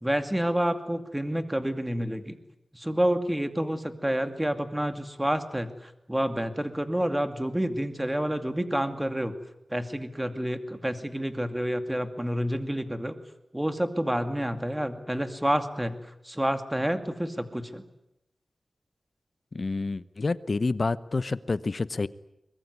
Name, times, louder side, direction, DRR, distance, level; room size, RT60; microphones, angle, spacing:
voice 1, 0.0-2.4 2.7-9.3 9.7-13.2 13.5-15.9 16.2-17.8, equal, 10° right, 8 dB, 2.4 m, -29 dB
voice 2, 19.5-22.1, left 3 dB, 50° left, 16 dB, 0.9 m, -28 dB
23.0 x 21.5 x 9.8 m, 0.84 s
wide cardioid pair, 70°, 0 cm